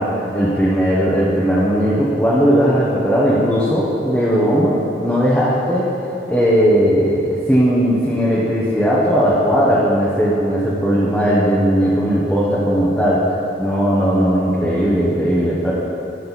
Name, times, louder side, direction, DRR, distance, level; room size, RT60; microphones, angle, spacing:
voice 1, 0.0-5.9 6.3-13.3 13.6-15.7, equal, 5° left, -9 dB, 1.1 m, -17 dB
14.0 x 6.5 x 4.1 m, 2.9 s
head